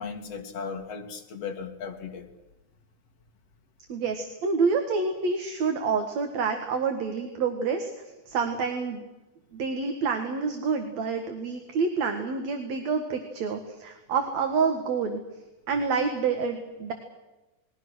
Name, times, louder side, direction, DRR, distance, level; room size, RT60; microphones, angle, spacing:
voice 1, 0.0-2.3, left 5 dB, 50° left, 4 dB, 3.1 m, -36 dB
voice 2, 3.9-7.9 8.3-9.0 9.5-15.2 15.7-16.9, right 5 dB, 60° right, 5 dB, 2.8 m, -28 dB
28.5 x 21.5 x 6.4 m, 1.0 s
omnidirectional pair, 3.7 m